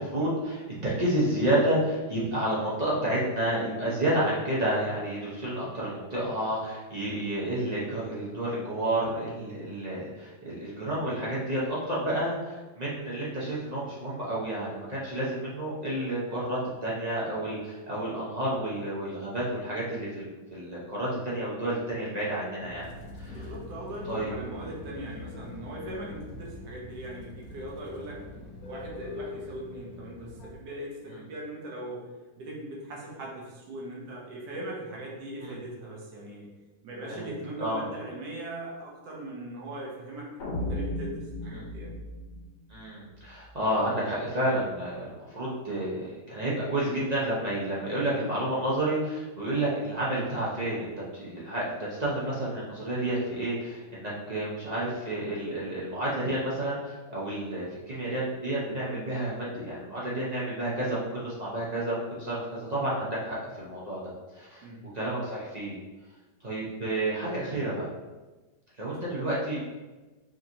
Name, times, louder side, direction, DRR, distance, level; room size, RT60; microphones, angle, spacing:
voice 1, 0.0-22.9 23.2-23.5 24.1-24.3 35.4-35.5 37.1-37.3 37.6-37.8 41.5-41.7 42.7-64.0 64.3-64.6 64.9-65.8 66.4-67.9 68.8-69.6, right 1 dB, 50° right, -7 dB, 0.5 m, -30 dB
sound 1, 22.5-30.6, left 3 dB, 65° left, 1.2 m, -43 dB
voice 2, 23.2-28.2 28.7-32.1 32.4-36.5 36.8-41.9 64.6-64.8, right 1 dB, 80° right, -3 dB, 1.5 m, -40 dB
sound 2, 40.4-43.5, left 1 dB, 90° left, 1.4 m, -35 dB
4.8 x 2.9 x 2.7 m, 1.2 s
omnidirectional pair, 1.8 m